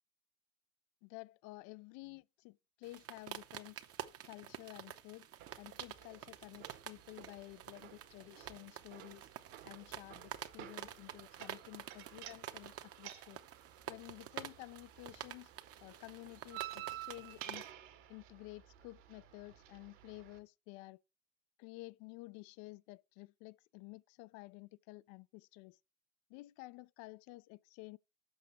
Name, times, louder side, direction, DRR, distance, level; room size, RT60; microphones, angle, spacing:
voice 1, 1.0-3.8 4.3-5.3 5.6-9.3 9.6-13.4 13.9-15.5 15.8-17.6 18.1-21.0 21.6-25.8 26.3-28.0, left 21 dB, 45° left, 0.5 m, -52 dB
sound 1, 2.8-17.7, right 10 dB, 35° right, 0.9 m, -49 dB
sound 2, 5.4-20.4, right 13 dB, 60° right, 1.8 m, -53 dB
7.8 x 5.8 x 6.8 m
hypercardioid pair, 85°, 41 cm